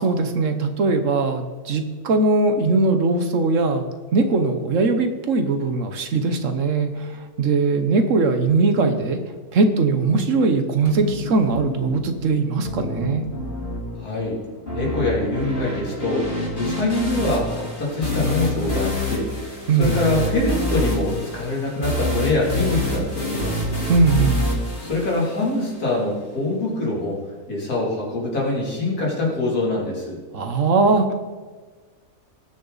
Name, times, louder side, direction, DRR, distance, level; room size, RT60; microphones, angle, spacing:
voice 1, 0.0-3.8 4.1-9.2 9.5-13.2 19.7-19.9 23.9-24.4 30.3-31.1, right 3 dB, 60° right, 7 dB, 1.3 m, -20 dB
sound 1, 10.9-25.9, left 1 dB, 40° left, 3.5 m, -27 dB
voice 2, 14.0-14.4 14.7-16.3 16.6-23.8 24.8-27.2 27.5-30.2, left 2 dB, 90° left, -3 dB, 3.4 m, -24 dB
19.5 x 6.9 x 4.0 m, 1.4 s
omnidirectional pair, 1.6 m